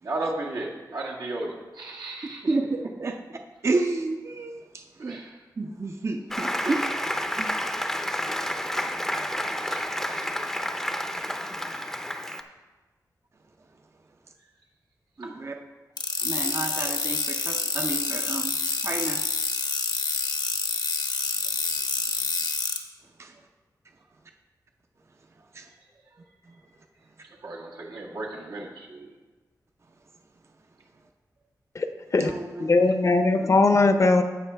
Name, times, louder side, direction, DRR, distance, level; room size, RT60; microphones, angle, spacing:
voice 1, 0.0-2.6 5.0-5.4 9.6-10.6 11.2-11.3 12.1-12.2 15.2-15.3 19.6-19.7 25.6-25.8 26.1-26.2 27.2-29.1, right 2 dB, 85° right, -4 dB, 1.8 m, -36 dB
voice 2, 2.5-3.2 3.6-5.2 5.6-6.9 7.4-7.5 15.2-15.5 16.2-18.5 18.8-19.2 23.2-23.3 25.5-25.7 32.2-32.9, right 3 dB, 40° right, 4 dB, 0.5 m, -30 dB
Applause, 6.3-12.4, equal, 5° left, 0.5 m, -30 dB
sound 1, 16.0-22.8, left 4 dB, 80° left, 0.9 m, -28 dB
voice 3, 32.6-34.2, left 3 dB, 45° left, 8 dB, 0.6 m, -19 dB
15.5 x 5.4 x 3.4 m, 1.3 s
wide cardioid pair, 110°, 7 cm